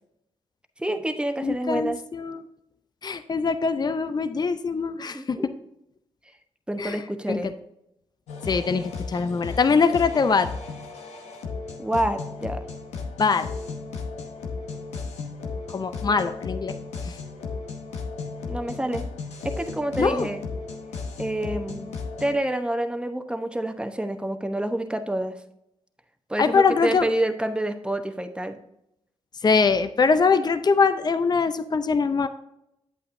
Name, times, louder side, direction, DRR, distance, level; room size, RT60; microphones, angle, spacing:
voice 1, 0.8-2.0 5.1-5.5 6.7-7.5 11.8-12.6 18.5-19.0 19.4-20.4 21.2-21.9 22.2-25.4 26.3-28.6, right 1 dB, 10° right, 7 dB, 0.9 m, -28 dB
voice 2, 1.4-2.4 3.0-5.4 6.8-7.0 7.3-7.4 8.5-10.5 13.2-13.5 15.7-16.7 17.1-17.2 20.0-20.3 26.4-27.1 29.4-32.3, left 5 dB, 40° left, 10 dB, 0.6 m, -22 dB
sound 1, 8.3-22.4, left 4 dB, 85° left, 0.9 m, -35 dB
8.4 x 8.0 x 2.6 m, 0.82 s
supercardioid pair, 50°, 11 cm